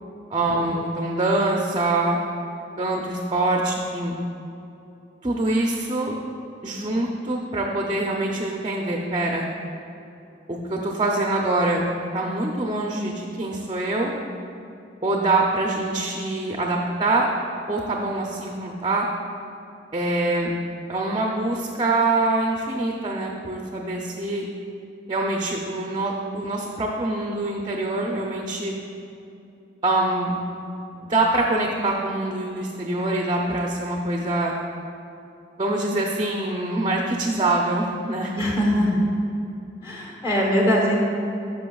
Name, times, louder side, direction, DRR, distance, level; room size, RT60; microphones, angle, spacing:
voice 1, 0.3-2.2 2.8-4.2 5.2-6.1 6.6-9.4 10.5-11.8 12.1-14.1 15.0-17.3 17.7-19.1 19.9-20.5 20.9-24.5 25.1-28.7 29.8-30.4 30.9-34.5 35.6-38.3, right 2 dB, 25° right, 0 dB, 0.5 m, -24 dB
voice 2, 38.3-39.1 39.8-41.0, equal, 25° left, -2 dB, 1.0 m, -21 dB
11.0 x 5.7 x 2.3 m, 2.7 s
head